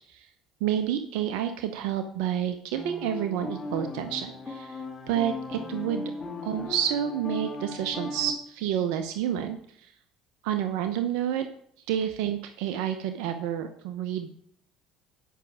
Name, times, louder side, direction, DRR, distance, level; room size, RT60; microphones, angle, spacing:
voice 1, 0.6-6.1 6.4-9.9 10.4-11.5 11.9-14.3, right 10 dB, 80° right, 9 dB, 0.7 m, -29 dB
sound 1, 2.7-8.3, left 3 dB, 25° left, 2.4 m, -37 dB
9.4 x 6.0 x 6.1 m, 0.67 s
supercardioid pair, 80°, 0 cm